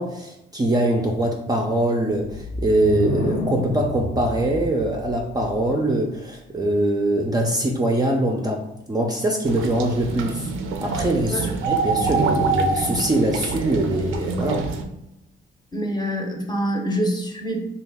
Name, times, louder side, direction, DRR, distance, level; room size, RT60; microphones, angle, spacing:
voice 1, 0.0-10.5 10.8-14.7, right 1 dB, 20° right, 1 dB, 0.4 m, -23 dB
sound 1, 2.2-5.9, left 2 dB, 80° left, 0.6 m, -30 dB
sound 2, 9.5-14.8, right 4 dB, 85° right, 0.4 m, -26 dB
voice 2, 15.7-17.7, equal, 20° left, 1 dB, 0.7 m, -25 dB
3.0 x 2.4 x 3.4 m, 0.83 s
cardioid pair, 90°, 20 cm